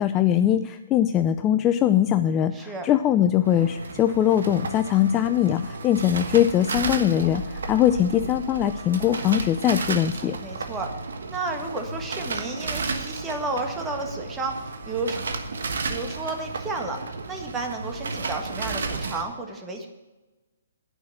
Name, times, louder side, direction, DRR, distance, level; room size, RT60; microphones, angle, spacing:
voice 1, 0.0-10.4, left 11 dB, 20° left, 9 dB, 0.4 m, -21 dB
voice 2, 2.5-2.9 10.4-10.9 11.3-14.5 14.9-15.2 15.9-17.0 17.3-19.9, right 3 dB, 10° right, 2 dB, 1.7 m, -31 dB
sound 1, 3.4-19.2, right 4 dB, 70° right, 1.3 m, -33 dB
10.0 x 5.8 x 8.6 m, 1.1 s
hypercardioid pair, 140°, 0 cm